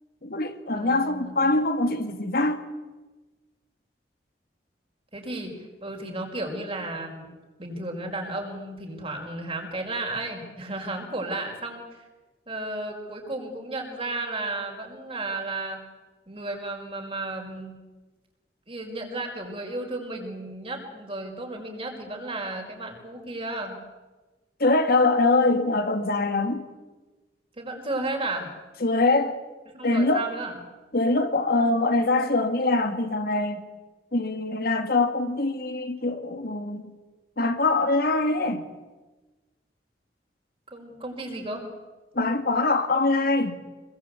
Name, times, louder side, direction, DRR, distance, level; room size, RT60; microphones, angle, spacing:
voice 1, 0.2-2.6 24.6-26.7 28.8-29.4 29.8-30.3 30.9-33.7 34.1-36.9 37.4-38.7 42.1-43.6, left 2 dB, 60° left, 7 dB, 2.1 m, -23 dB
voice 2, 0.7-1.5 5.1-7.3 7.6-11.9 12.5-15.8 16.3-17.7 18.7-23.8 27.6-28.5 29.7-30.5 40.7-41.7, right 2 dB, 35° right, 2 dB, 5.3 m, -33 dB
26.0 x 21.5 x 8.4 m, 1.2 s
head